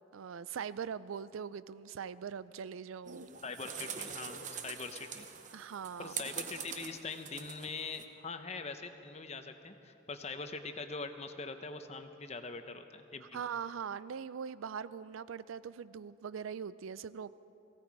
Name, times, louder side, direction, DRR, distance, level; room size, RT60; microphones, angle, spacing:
voice 1, 0.1-3.3 5.5-6.1 13.3-17.4, right 7 dB, 85° right, 17 dB, 0.4 m, -41 dB
sound 1, 3.1-8.0, right 7 dB, 40° right, 0.8 m, -44 dB
voice 2, 3.4-5.3 6.0-13.4, left 4 dB, 35° left, 8 dB, 0.8 m, -43 dB
18.0 x 16.5 x 4.8 m, 2.8 s
head